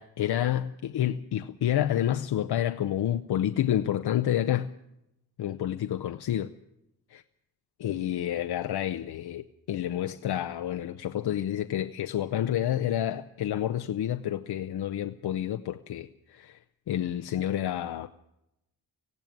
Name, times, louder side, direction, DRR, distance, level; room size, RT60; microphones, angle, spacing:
voice 1, 0.0-4.7 5.4-6.5 7.8-16.6 16.9-18.1, left 11 dB, 80° left, 0.7 m, -29 dB
18.0 x 16.0 x 9.3 m
wide cardioid pair, 180°, 39 cm